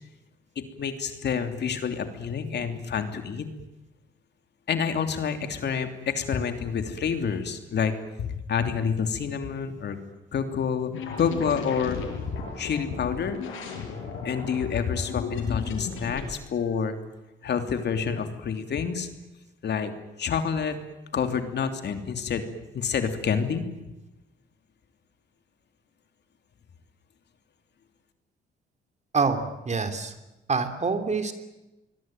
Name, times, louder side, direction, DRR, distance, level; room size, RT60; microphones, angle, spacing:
voice 1, 0.5-3.5 4.7-7.9 8.2-10.0 10.3-10.9 11.2-12.0 12.6-13.4 14.2-16.9 17.4-19.1 19.6-19.9 20.2-20.8 21.1-22.4 22.7-23.6, left 6 dB, 60° left, 7 dB, 3.1 m, -28 dB
sound 1, 10.9-16.3, left 5 dB, 85° left, 7.2 m, -35 dB
voice 2, 29.1-30.1 30.5-31.3, right 4 dB, 35° right, 8 dB, 3.3 m, -26 dB
25.5 x 22.0 x 9.2 m, 0.98 s
cardioid pair, 90°, 20 cm